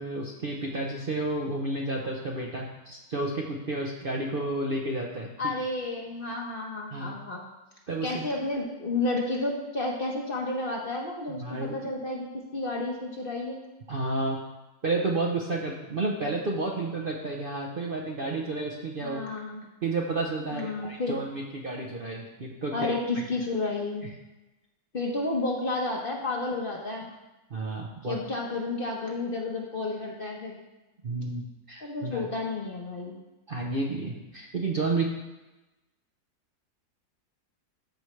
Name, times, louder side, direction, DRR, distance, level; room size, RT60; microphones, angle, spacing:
voice 1, 0.0-5.5 6.9-7.2 7.9-8.3 11.3-11.8 13.9-14.4 14.8-19.2 19.8-22.9 24.0-24.1 27.5-28.2 31.0-32.2 33.5-35.1, right 2 dB, 45° right, -1 dB, 0.8 m, -31 dB
voice 2, 5.4-7.4 8.0-13.6 19.0-19.7 20.5-21.2 22.7-24.1 24.9-27.1 28.0-30.6 31.8-33.2, left 2 dB, 40° left, 0 dB, 1.1 m, -31 dB
13.5 x 4.8 x 3.2 m, 1.0 s
omnidirectional pair, 1.6 m